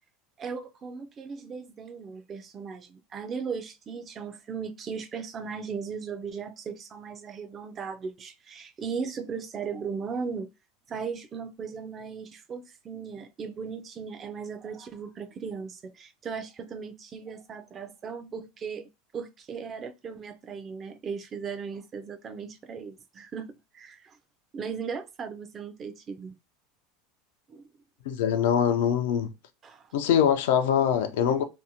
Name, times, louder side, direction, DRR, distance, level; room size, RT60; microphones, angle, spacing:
voice 1, 0.4-10.5 10.9-24.2 24.5-26.3 27.5-27.7 29.6-29.9, right 6 dB, 25° right, 0.3 m, -37 dB
voice 2, 28.1-29.3 29.9-31.4, left 8 dB, 80° left, 0.4 m, -23 dB
2.6 x 2.1 x 2.7 m
supercardioid pair, 150°, 0 cm